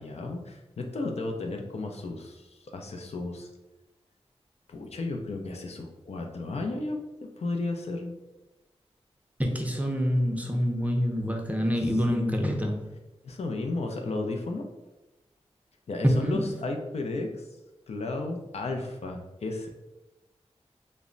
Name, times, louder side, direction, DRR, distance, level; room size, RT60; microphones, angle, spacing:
voice 1, 0.0-3.5 4.7-7.0 7.4-8.1 12.1-12.7 13.2-14.7 15.9-17.5 17.9-19.7, left 2 dB, 70° left, 3 dB, 0.4 m, -33 dB
voice 2, 9.4-12.9 16.0-16.4, equal, 15° right, 2 dB, 0.5 m, -26 dB
2.1 x 2.0 x 3.7 m, 1.0 s
cardioid pair, 55°, 11 cm